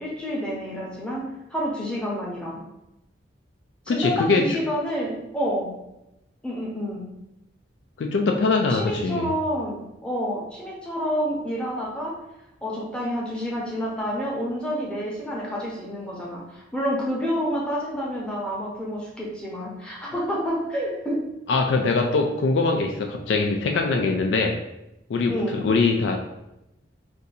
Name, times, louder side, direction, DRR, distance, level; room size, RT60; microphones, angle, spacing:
voice 1, 0.0-2.6 3.9-5.7 6.4-7.0 8.7-12.1 12.6-21.2 25.3-25.6, equal, 5° left, -5 dB, 0.7 m, -28 dB
voice 2, 3.9-4.6 8.0-9.3 21.5-24.6 25.1-26.2, left 3 dB, 70° left, 2 dB, 0.3 m, -22 dB
2.6 x 2.6 x 3.9 m, 0.89 s
head